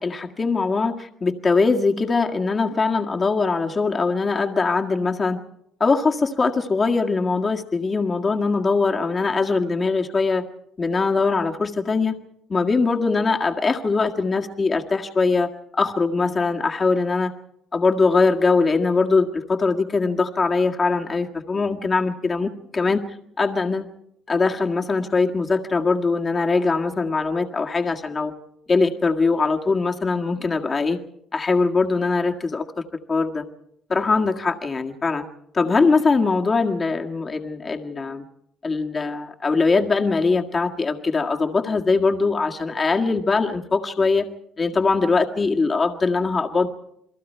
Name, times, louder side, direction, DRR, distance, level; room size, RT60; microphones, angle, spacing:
voice 1, 0.0-5.4 5.8-10.4 10.8-12.2 12.5-17.3 17.7-23.0 23.4-23.9 24.3-28.3 28.7-31.0 31.3-32.7 33.1-33.4 33.9-35.2 35.5-38.2 38.6-44.3 44.6-46.7, left 4 dB, 30° left, 3 dB, 1.8 m, -21 dB
29.0 x 22.0 x 4.6 m, 0.76 s
cardioid pair, 120°, 0 cm